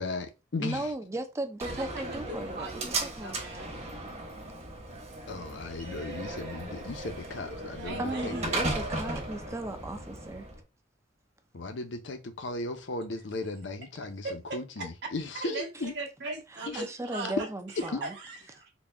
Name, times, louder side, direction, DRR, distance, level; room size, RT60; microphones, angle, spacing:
voice 1, 0.0-0.9 5.3-8.6 11.5-15.9 16.7-16.8 17.9-18.0, left 2 dB, 70° left, 0.7 m, -36 dB
voice 2, 0.6-3.4 8.0-10.5 16.5-18.1, right 1 dB, 15° right, 0.4 m, -36 dB
Slam, 1.6-10.6, right 2 dB, 35° right, 1.2 m, -37 dB
voice 3, 1.6-3.7 7.8-8.4 15.4-15.7 15.9-17.3 17.8-18.7, right 2 dB, 60° right, 1.1 m, -39 dB
sound 1, 6.0-9.6, right 1 dB, 85° right, 1.0 m, -46 dB
4.0 x 2.2 x 3.4 m
head